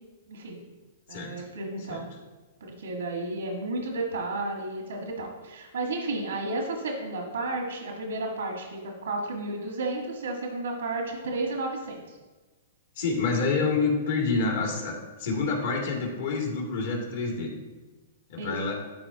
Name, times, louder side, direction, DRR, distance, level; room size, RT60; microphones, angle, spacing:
voice 1, 0.3-0.6 1.1-2.1 2.6-12.2 18.4-18.5, right 2 dB, 90° right, 1 dB, 1.4 m, -32 dB
voice 2, 13.0-17.5 18.3-18.8, left 4 dB, 65° left, -2 dB, 2.3 m, -27 dB
12.0 x 4.4 x 2.9 m, 1.2 s
hypercardioid pair, 125°, 0 cm